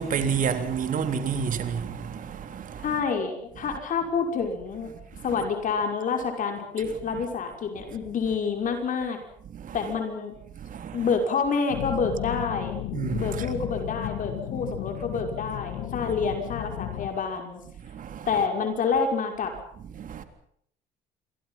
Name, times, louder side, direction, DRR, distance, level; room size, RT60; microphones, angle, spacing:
voice 1, 0.0-2.9 5.2-5.3 9.5-9.8 10.6-11.1 12.9-13.6 17.8-18.3 20.0-20.2, right 6 dB, 50° right, 3.5 m, -30 dB
voice 2, 2.8-4.9 5.2-9.2 9.7-10.3 10.9-12.7 13.1-17.6 18.3-19.5, left 5 dB, 50° left, 5.8 m, -28 dB
sound 1, 11.7-17.1, left 13 dB, 90° left, 1.9 m, -34 dB
27.5 x 23.0 x 5.8 m
cardioid pair, 110°, 17 cm